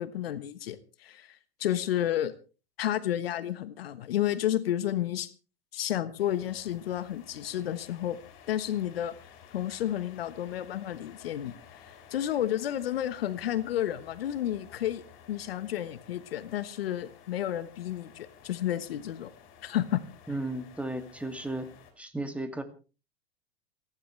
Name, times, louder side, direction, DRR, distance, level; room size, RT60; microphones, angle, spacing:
voice 1, 0.0-2.3 2.8-5.3 5.7-8.2 8.5-9.1 9.5-15.0 15.3-19.3 19.6-20.0, left 12 dB, 70° left, 13 dB, 1.3 m, -31 dB
sound 1, 6.2-21.9, left 8 dB, 40° left, 5.6 m, -54 dB
voice 2, 20.3-22.6, right 1 dB, 5° right, 7 dB, 2.4 m, -35 dB
29.0 x 11.5 x 3.3 m, 0.35 s
hypercardioid pair, 100°, 31 cm